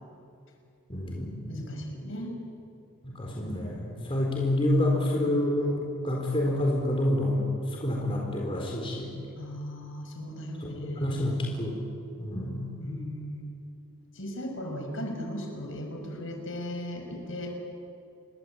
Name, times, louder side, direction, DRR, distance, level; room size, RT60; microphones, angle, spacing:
voice 1, 0.9-1.5 3.0-7.4 7.7-9.1 10.6-11.8 12.2-12.7, left 1 dB, 25° left, -1 dB, 4.3 m, -28 dB
voice 2, 1.5-2.3 9.4-11.4 12.8-13.5 14.1-17.5, equal, 60° left, 2 dB, 5.8 m, -37 dB
28.0 x 23.0 x 9.0 m, 2.6 s
head